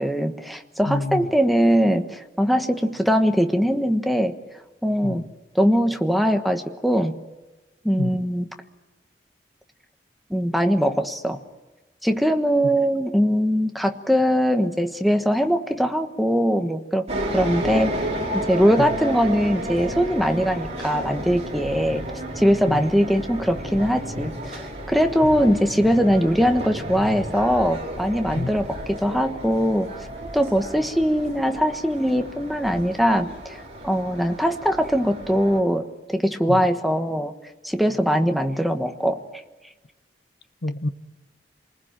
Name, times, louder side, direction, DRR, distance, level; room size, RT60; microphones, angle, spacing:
voice 1, 0.0-4.3 4.8-5.3 5.5-7.1 7.8-8.5 10.3-11.4 12.0-17.1 17.3-18.0 18.3-22.0 22.4-29.9 30.3-33.6 33.8-37.3 37.6-39.4, equal, ahead, 1.3 m, -21 dB
voice 2, 0.9-1.3 5.0-5.3 8.0-8.2 18.8-18.9 21.9-22.1 22.7-22.8 25.2-25.3 28.3-28.6 36.5-36.7 40.6-40.9, left 2 dB, 65° left, 1.0 m, -28 dB
sound 1, 17.1-35.6, right 1 dB, 35° right, 4.7 m, -32 dB
28.0 x 20.5 x 9.0 m
head